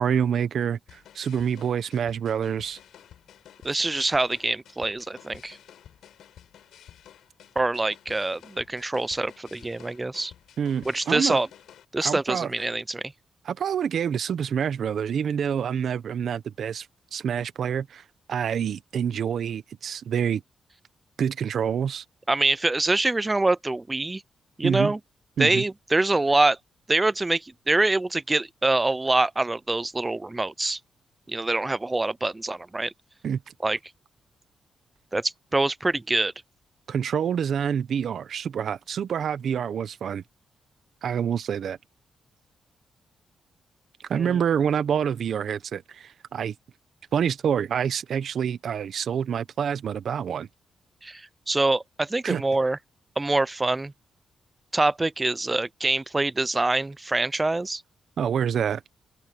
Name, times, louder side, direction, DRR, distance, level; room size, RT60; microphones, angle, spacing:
voice 1, 0.0-2.8 10.6-11.4 12.0-12.7 13.4-16.9 17.1-18.0 18.3-20.4 21.2-22.0 24.6-24.9 25.4-25.6 33.2-33.4 36.9-40.2 41.0-41.8 44.1-46.5 47.1-50.5 52.2-52.4 58.2-58.8, right 8 dB, 65° right, 1.2 m, -27 dB
sound 1, 0.9-11.8, left 10 dB, 85° left, 7.2 m, -52 dB
voice 2, 3.6-5.6 7.6-10.3 10.9-11.5 11.9-13.0 22.3-24.2 24.6-25.0 25.4-26.6 26.9-30.8 31.3-32.9 33.6-33.8 35.1-36.3 44.2-44.4 51.0-51.2 51.5-52.8 53.2-53.9 54.7-57.8, right 2 dB, 15° right, 0.4 m, -25 dB
open air
cardioid pair, 115°, 0 cm